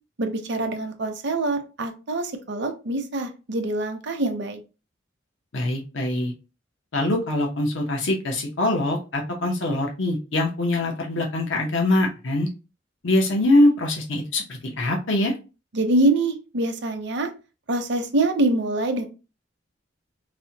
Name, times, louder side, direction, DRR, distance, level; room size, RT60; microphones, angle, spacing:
voice 1, 0.2-4.6 15.7-17.3 17.7-19.0, right 2 dB, 65° right, 5 dB, 0.7 m, -24 dB
voice 2, 5.5-6.3 6.9-12.5 13.0-15.3, left 1 dB, 75° left, 1 dB, 0.8 m, -23 dB
4.2 x 2.1 x 2.8 m, 0.32 s
head